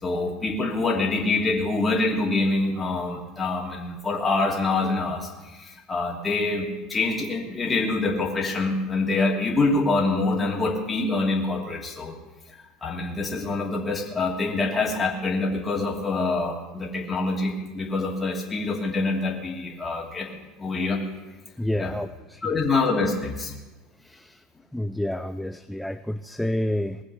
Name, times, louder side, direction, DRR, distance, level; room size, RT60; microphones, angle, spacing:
voice 1, 0.0-12.1 12.8-20.3 20.6-21.0 21.8-21.9 22.4-23.5, left 3 dB, 20° left, -1 dB, 2.7 m, -25 dB
voice 2, 21.6-22.6 24.0-24.4 24.7-27.0, left 1 dB, 5° left, 10 dB, 0.5 m, -29 dB
19.5 x 7.5 x 6.6 m, 1.1 s
hypercardioid pair, 75°, 0 cm